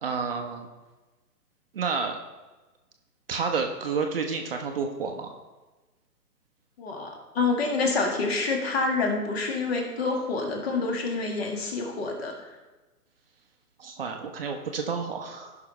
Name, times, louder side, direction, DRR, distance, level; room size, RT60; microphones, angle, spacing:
voice 1, 0.0-0.7 1.7-2.2 3.3-5.3 13.8-15.6, right 5 dB, 35° right, 3 dB, 0.9 m, -30 dB
voice 2, 6.8-12.6, left 3 dB, 40° left, 2 dB, 1.9 m, -27 dB
16.0 x 5.8 x 3.1 m, 1.2 s
figure-of-eight pair, 135°, 47 cm